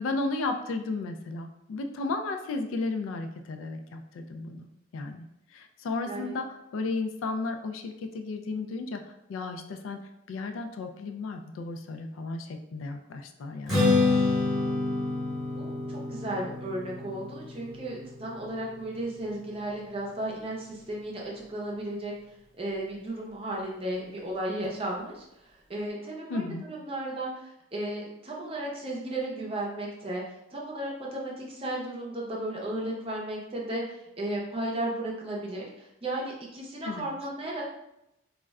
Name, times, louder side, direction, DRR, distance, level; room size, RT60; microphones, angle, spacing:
voice 1, 0.0-4.7 4.9-10.0 10.3-14.1 26.3-26.7 36.8-37.1, left 3 dB, 90° left, 7 dB, 0.3 m, -34 dB
Strum, 13.7-20.0, left 3 dB, ahead, 0.8 m, -28 dB
voice 2, 15.6-22.1 22.6-25.2 25.7-26.4 26.7-30.2 30.5-37.7, right 1 dB, 30° right, -2 dB, 0.5 m, -34 dB
2.3 x 2.1 x 3.4 m, 0.83 s
head